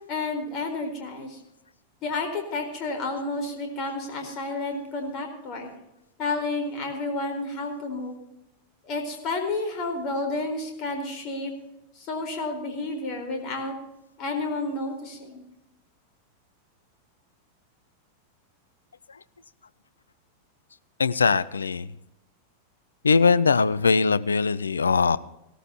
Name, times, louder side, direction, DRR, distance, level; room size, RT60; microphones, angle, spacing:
voice 1, 0.1-1.4 2.0-5.7 6.2-8.2 8.8-11.5 12.0-13.7 14.2-15.4, left 2 dB, 40° left, 4 dB, 4.3 m, -31 dB
voice 2, 21.0-21.9 23.0-25.2, left 4 dB, 75° left, 17 dB, 0.5 m, -21 dB
18.0 x 13.0 x 2.9 m, 0.89 s
figure-of-eight pair, 90°, 0 cm